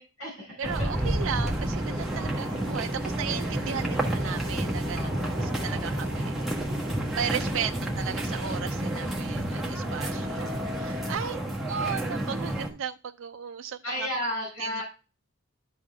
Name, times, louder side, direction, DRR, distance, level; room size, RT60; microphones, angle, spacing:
voice 1, 0.0-0.6 0.9-1.0 4.8-5.9 7.5-7.7 11.1-11.5 13.8-14.8, left 1 dB, 80° left, 4.9 m, -35 dB
sound 1, 0.6-12.7, right 1 dB, ahead, 1.3 m, -30 dB
voice 2, 0.6-5.1 5.4-6.4 7.1-11.4 11.7-14.1 14.6-14.8, right 8 dB, 65° right, 0.4 m, -35 dB
sound 2, 0.9-11.2, left 1 dB, 20° right, 1.7 m, -38 dB
12.0 x 4.1 x 3.4 m
head